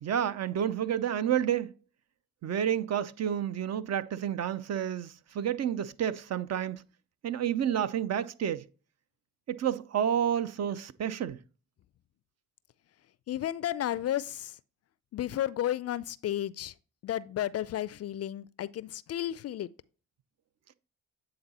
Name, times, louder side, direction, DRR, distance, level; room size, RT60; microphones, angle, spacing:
voice 1, 0.0-1.7 2.4-6.8 7.2-8.7 9.5-11.4, right 9 dB, 45° right, 0.7 m, -30 dB
voice 2, 13.3-14.6 15.1-16.7 17.0-19.7, left 12 dB, 45° left, 0.4 m, -33 dB
8.6 x 3.9 x 4.1 m
hypercardioid pair, 50°, 35 cm